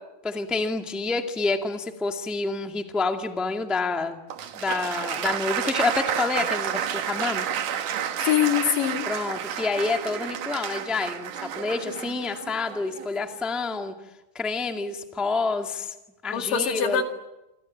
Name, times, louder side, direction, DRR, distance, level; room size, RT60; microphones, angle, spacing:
voice 1, 0.2-4.2 4.5-7.5 9.1-13.9 14.3-15.9 16.2-17.0, left 3 dB, ahead, 4 dB, 1.1 m, -28 dB
Applause, 4.3-13.2, right 9 dB, 75° right, 3.0 m, -30 dB
voice 2, 8.2-9.1 16.3-17.0, left 9 dB, 90° left, 5 dB, 4.0 m, -23 dB
27.0 x 26.5 x 7.5 m, 0.94 s
omnidirectional pair, 3.7 m